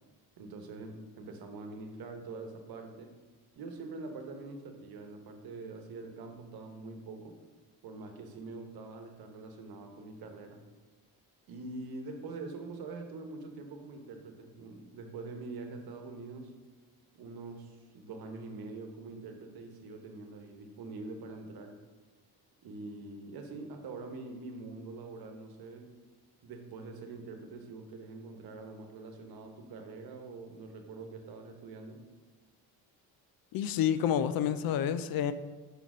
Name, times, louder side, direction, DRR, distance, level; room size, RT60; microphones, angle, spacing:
voice 1, 0.4-3.1 3.5-7.4 7.8-10.6 11.5-16.5 17.1-21.8 22.6-25.9 26.4-32.0, right 3 dB, 60° right, 5 dB, 1.1 m, -44 dB
voice 2, 33.5-35.3, left 9 dB, 60° left, 13 dB, 0.5 m, -29 dB
5.9 x 4.0 x 6.1 m, 1.3 s
cardioid pair, 95°, 40 cm